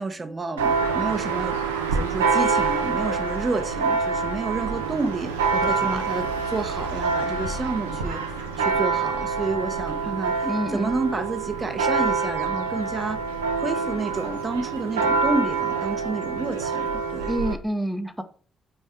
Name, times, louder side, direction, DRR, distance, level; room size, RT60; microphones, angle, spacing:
voice 1, 0.0-1.6 1.9-10.5 10.7-13.2 13.6-17.3, right 3 dB, 30° right, 0.9 m, -30 dB
Church bell, 0.6-17.5, right 5 dB, 80° right, 0.7 m, -26 dB
voice 2, 5.5-6.0 10.4-10.9 17.3-18.2, equal, ahead, 1.0 m, -28 dB
5.6 x 4.5 x 4.9 m
figure-of-eight pair, 40°, 0 cm